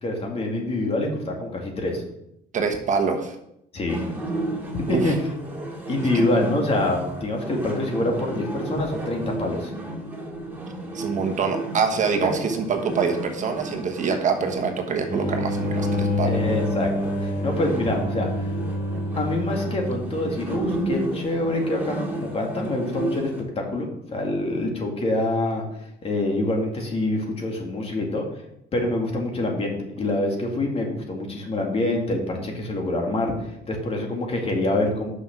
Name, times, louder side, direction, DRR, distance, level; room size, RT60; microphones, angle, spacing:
voice 1, 0.0-2.0 3.7-4.1 4.7-5.2 5.9-9.7 12.2-12.4 16.2-18.3 19.2-25.6 26.0-28.2 28.7-33.3 33.7-35.1, left 2 dB, 35° left, 1 dB, 2.2 m, -26 dB
voice 2, 2.5-3.3 4.9-5.1 6.0-6.1 10.9-16.4, right 5 dB, 45° right, 4 dB, 1.3 m, -25 dB
sound 1, 3.9-23.4, right 2 dB, 10° right, 2.2 m, -33 dB
sound 2, 15.1-20.5, left 1 dB, 50° left, 3.5 m, -27 dB
6.2 x 6.0 x 5.9 m, 0.79 s
cardioid pair, 110°, 17 cm